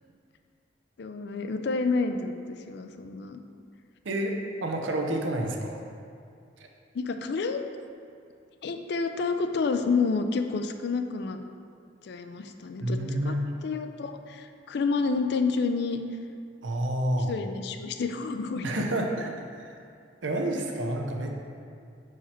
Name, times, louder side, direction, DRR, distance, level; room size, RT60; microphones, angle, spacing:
voice 1, 1.0-3.4 6.9-7.6 8.6-11.4 12.0-13.4 13.6-16.0 17.3-18.7, left 4 dB, 60° left, 7 dB, 0.4 m, -29 dB
voice 2, 4.0-5.8 12.8-13.5 16.6-17.3 18.6-19.7 20.2-21.4, right 1 dB, 80° right, 2 dB, 0.7 m, -29 dB
5.6 x 4.8 x 4.3 m, 2.3 s
head